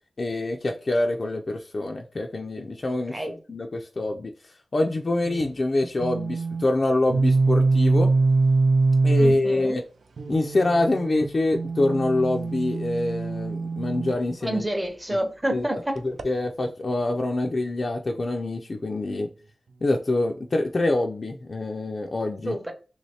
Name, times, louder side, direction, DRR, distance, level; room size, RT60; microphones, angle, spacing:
voice 1, 0.2-3.2 3.5-8.1 9.0-9.8 10.3-14.7 15.5-19.3 19.8-22.6, left 2 dB, 45° left, 0.3 m, -25 dB
sound 1, 5.3-5.5 6.0-6.7 7.1-9.5 10.2-14.2 16.0-16.2, right 3 dB, 75° right, 0.3 m, -23 dB
voice 2, 9.2-9.8 14.4-16.0 22.5-22.7, right 1 dB, 15° right, 0.6 m, -28 dB
3.1 x 3.0 x 2.7 m
wide cardioid pair, 125°, 0 cm